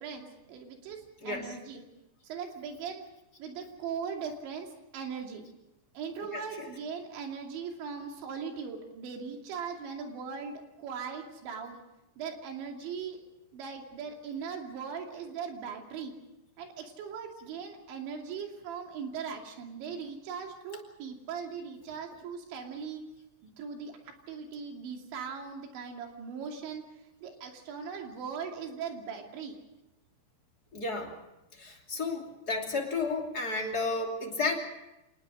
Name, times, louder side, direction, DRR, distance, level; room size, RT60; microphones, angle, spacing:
voice 1, 0.0-1.8 2.2-3.0 3.4-5.5 5.9-11.8 12.2-13.2 13.5-16.1 16.6-23.0 23.4-23.9 24.3-26.8 27.2-29.6, right 6 dB, 85° right, 2 dB, 5.0 m, -39 dB
voice 2, 1.2-1.6 6.3-6.7 30.7-31.1 31.5-34.6, left 3 dB, 25° left, 1 dB, 2.6 m, -32 dB
26.5 x 19.5 x 6.3 m, 0.92 s
omnidirectional pair, 5.1 m